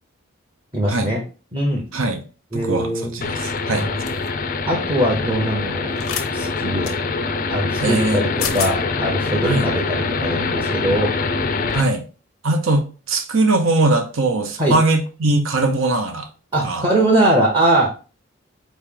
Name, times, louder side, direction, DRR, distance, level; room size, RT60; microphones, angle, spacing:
voice 1, 0.7-1.2 1.5-1.9 2.5-3.2 3.7-4.0 4.7-5.9 6.3-6.9 7.5-11.1 14.6-14.8 16.5-17.9, right 1 dB, 25° right, 0.8 m, -21 dB
voice 2, 2.5-3.9 7.8-8.2 9.4-9.7 11.7-12.0 12.4-16.3 16.6-16.9, right 2 dB, 75° right, 0.7 m, -20 dB
sound 1, 3.2-11.8, left 4 dB, 40° left, 0.4 m, -24 dB
sound 2, 4.1-4.3 6.0-6.3 6.8-7.0 8.1-8.2 8.4-8.7, left 7 dB, 85° left, 0.7 m, -27 dB
4.3 x 3.1 x 3.7 m
head